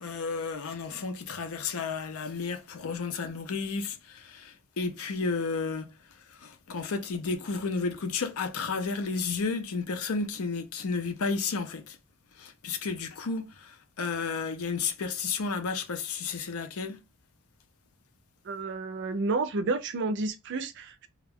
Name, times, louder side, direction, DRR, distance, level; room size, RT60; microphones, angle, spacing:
voice 1, 0.0-12.0 12.4-17.0, left 4 dB, 80° left, 0.5 m, -32 dB
voice 2, 18.5-21.1, right 3 dB, 55° right, 0.4 m, -30 dB
2.3 x 2.2 x 3.4 m
head